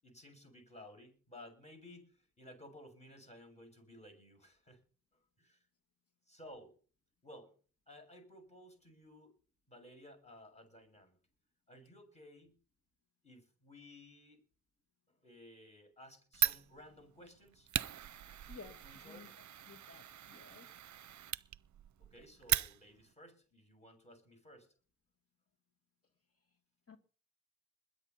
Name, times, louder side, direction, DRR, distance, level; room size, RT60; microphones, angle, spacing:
voice 1, 0.0-4.8 5.1-5.7 6.3-6.8 7.2-7.6 7.9-9.3 9.7-11.2 11.7-12.6 13.2-14.4 15.2-17.7 18.8-19.3 22.0-24.7, left 1 dB, 20° left, 7.1 m, -56 dB
Fire, 16.3-23.1, right 11 dB, 60° right, 0.6 m, -39 dB
voice 2, 18.5-19.3 19.7-20.7 26.9-27.0, left 5 dB, 45° left, 2.2 m, -54 dB
21.0 x 10.5 x 4.2 m
wide cardioid pair, 125°, 32 cm